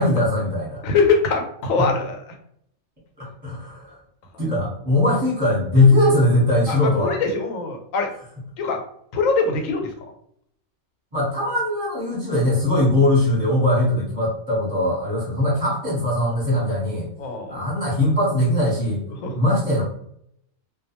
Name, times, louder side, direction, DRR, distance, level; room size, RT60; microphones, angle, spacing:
voice 1, 0.0-0.8 1.8-1.9 3.2-4.0 4.4-7.2 11.1-17.1 17.5-19.0 19.3-19.8, left 1 dB, 5° right, -6 dB, 0.9 m, -20 dB
voice 2, 0.8-2.2 6.7-8.1 8.6-8.8 9.1-9.9 17.2-17.6 19.2-19.3, left 4 dB, 80° left, 4 dB, 1.0 m, -22 dB
2.3 x 2.1 x 2.9 m, 0.69 s
omnidirectional pair, 1.4 m